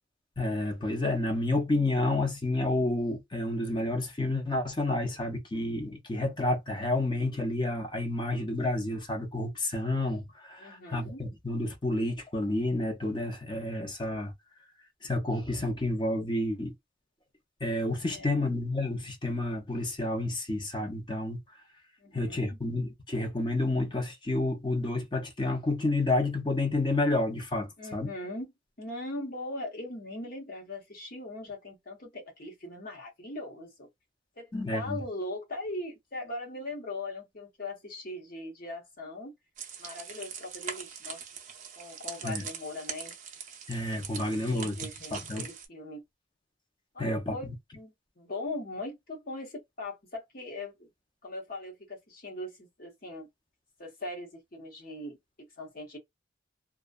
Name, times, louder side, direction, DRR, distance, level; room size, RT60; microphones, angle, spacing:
voice 1, 0.4-14.3 15.0-16.7 17.6-21.4 22.1-28.1 34.5-35.0 42.2-42.4 43.7-44.7 45.1-45.5 47.0-47.4, left 2 dB, 25° left, 0.6 m, -30 dB
voice 2, 10.6-11.2 18.1-18.4 22.0-22.6 27.8-33.9 34.4-39.4 39.8-41.2 41.8-43.1 44.2-46.0 46.9-50.9 51.2-53.3 53.8-56.0, left 2 dB, 45° left, 1.0 m, -40 dB
sound 1, 39.6-45.7, right 7 dB, 40° right, 0.5 m, -42 dB
2.5 x 2.3 x 2.2 m
head